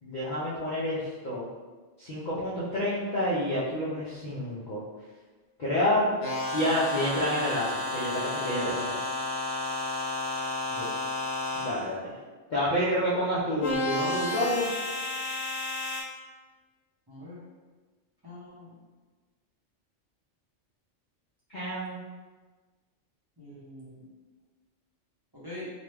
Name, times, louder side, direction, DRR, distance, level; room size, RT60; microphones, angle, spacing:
voice 1, 0.0-1.5 2.0-4.8 5.6-6.1 6.5-9.0 11.5-12.2 12.5-14.7 21.5-22.0, left 1 dB, 55° left, -9 dB, 0.5 m, -29 dB
sound 1, 6.2-11.9 13.6-16.0, left 2 dB, 85° left, 1.0 m, -32 dB
voice 2, 17.1-17.4 18.2-18.7 23.4-24.1 25.3-25.7, left 1 dB, 25° right, -10 dB, 0.7 m, -43 dB
2.8 x 2.2 x 3.2 m, 1.3 s
omnidirectional pair, 1.3 m